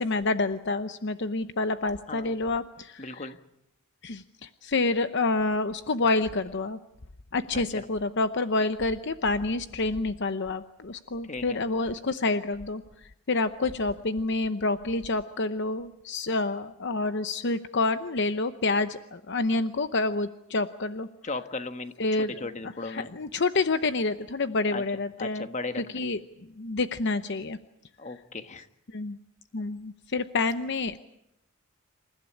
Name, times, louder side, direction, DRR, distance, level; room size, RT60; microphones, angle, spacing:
voice 1, 0.0-3.3 4.0-6.8 7.3-12.8 13.3-21.1 22.0-25.5 25.7-26.2 26.6-27.6 28.9-29.2 29.5-31.0, left 3 dB, 55° left, 10 dB, 0.8 m, -28 dB
voice 2, 3.0-3.4 7.5-7.6 11.3-11.6 21.2-23.1 24.7-24.8 25.2-26.1 28.0-28.7, left 3 dB, 35° left, 9 dB, 1.4 m, -36 dB
28.0 x 15.0 x 10.0 m, 0.85 s
head